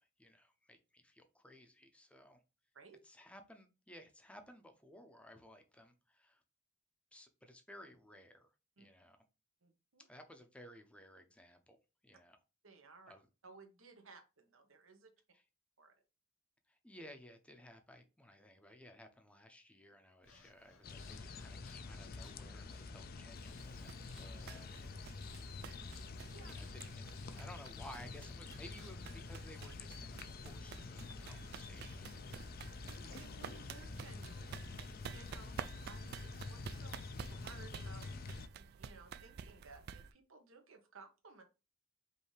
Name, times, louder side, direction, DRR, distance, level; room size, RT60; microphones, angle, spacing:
voice 1, 0.0-2.4 3.0-6.4 7.1-8.5 8.8-9.2 10.0-12.4 13.1-13.3 15.3-15.4 16.7-25.1 26.5-27.0 27.3-32.2, left 1 dB, 5° left, 6 dB, 0.7 m, -57 dB
voice 2, 9.6-10.0 12.6-13.1 13.4-15.1 15.8-15.9 26.3-26.5 32.7-38.1 38.5-41.4, right 4 dB, 85° right, 5 dB, 1.1 m, -59 dB
Breathing, 20.2-29.1, left 5 dB, 85° left, 1.1 m, -63 dB
sound 1, 20.8-38.5, left 3 dB, 50° left, 0.4 m, -48 dB
sound 2, 23.5-40.1, right 7 dB, 50° right, 0.3 m, -51 dB
5.5 x 2.7 x 3.2 m, 0.30 s
head